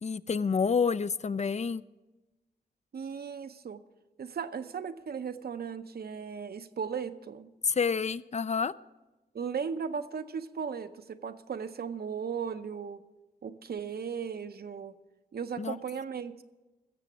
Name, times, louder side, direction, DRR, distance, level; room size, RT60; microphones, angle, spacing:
voice 1, 0.0-1.8 7.6-8.7 15.6-15.8, left 5 dB, 45° left, 16 dB, 0.4 m, -28 dB
voice 2, 2.9-3.8 4.2-7.5 9.3-13.0 13.4-15.0 15.3-16.4, right 6 dB, 75° right, 10 dB, 0.6 m, -36 dB
16.0 x 6.8 x 6.1 m, 1.1 s
cardioid pair, 50°, 16 cm